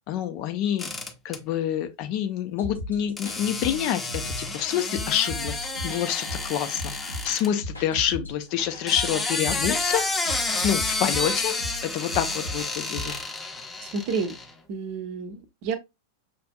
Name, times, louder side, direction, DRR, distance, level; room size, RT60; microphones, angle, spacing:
voice 1, 0.1-0.9 1.2-10.1 10.6-11.6 11.8-13.1, left 10 dB, 45° left, 0.5 m, -27 dB
sound 1, 0.8-1.4 3.2-7.5 8.7-14.5, left 3 dB, 10° left, 0.7 m, -30 dB
sound 2, 2.6-13.2, left 1 dB, 80° left, 1.1 m, -37 dB
voice 2, 13.8-14.3 14.7-15.8, right 5 dB, 45° right, 0.6 m, -30 dB
5.9 x 2.5 x 2.2 m
figure-of-eight pair, 90°, 0 cm